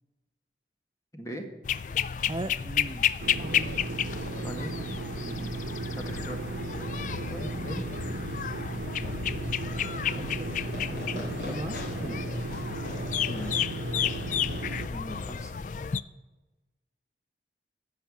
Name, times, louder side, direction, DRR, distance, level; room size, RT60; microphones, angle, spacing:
voice 1, 1.1-1.5 4.2-4.8 5.2-5.5 6.0-6.4 7.2-7.9 11.1-11.3 13.3-13.7 14.9-15.5, equal, 20° left, 3 dB, 1.6 m, -40 dB
sound 1, 1.6-16.0, left 8 dB, 45° left, 0.4 m, -32 dB
voice 2, 2.2-3.8 7.5-7.6 9.0-9.1 9.4-10.5 10.9-12.3, right 2 dB, 25° right, 10 dB, 0.4 m, -40 dB
sound 2, 3.2-14.9, right 3 dB, 85° right, 0.8 m, -36 dB
Fireworks, 10.4-16.0, left 2 dB, 60° left, 3.5 m, -44 dB
16.0 x 5.8 x 8.4 m, 1.1 s
head